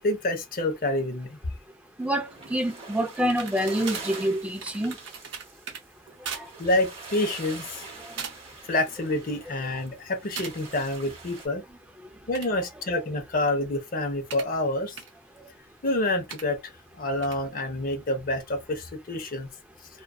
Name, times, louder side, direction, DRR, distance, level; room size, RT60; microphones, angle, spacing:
voice 1, 0.0-1.4 6.6-7.8 8.7-11.6 12.3-15.0 15.8-19.5, left 1 dB, 45° left, 0.6 m, -28 dB
voice 2, 2.0-5.0 6.3-6.5 8.0-8.1, equal, 5° right, 0.4 m, -27 dB
sound 1, 2.0-11.5, right 3 dB, 30° right, 0.7 m, -44 dB
sound 2, 3.2-5.8 6.2-6.5 6.8-7.1 7.7-7.9 8.2-8.6 9.0-9.4 10.4-10.6 12.1-14.5 15.0-15.1 16.3-16.4 17.2-17.4, right 6 dB, 65° right, 0.6 m, -40 dB
2.5 x 2.2 x 2.3 m
head